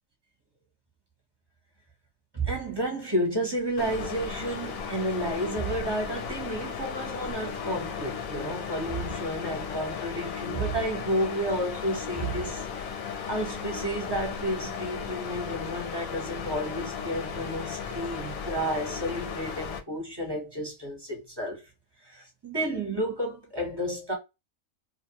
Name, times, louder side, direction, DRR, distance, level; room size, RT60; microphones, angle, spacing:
voice 1, 2.3-12.7 13.3-21.6 22.1-24.2, right 1 dB, 20° right, 0.7 m, -31 dB
sound 1, 3.8-19.8, left 6 dB, 90° left, 1.1 m, -36 dB
2.8 x 2.2 x 2.8 m
omnidirectional pair, 1.4 m